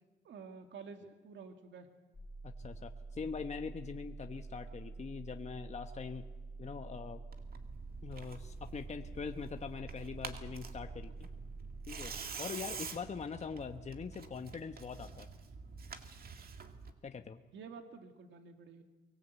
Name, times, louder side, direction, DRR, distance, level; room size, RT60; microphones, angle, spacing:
voice 1, 0.2-1.9 17.5-18.8, right 5 dB, 70° right, 5 dB, 2.2 m, -50 dB
sound 1, 2.1-12.2, right 3 dB, 15° left, 3.5 m, -47 dB
voice 2, 2.4-6.2 6.6-7.2 8.0-11.3 11.9-15.3 17.0-17.4, left 5 dB, 35° left, 6 dB, 1.1 m, -43 dB
Tearing, 7.3-16.9, right 5 dB, 50° right, 2.1 m, -47 dB
23.5 x 19.0 x 8.2 m, 1.2 s
cardioid pair, 90°, 20 cm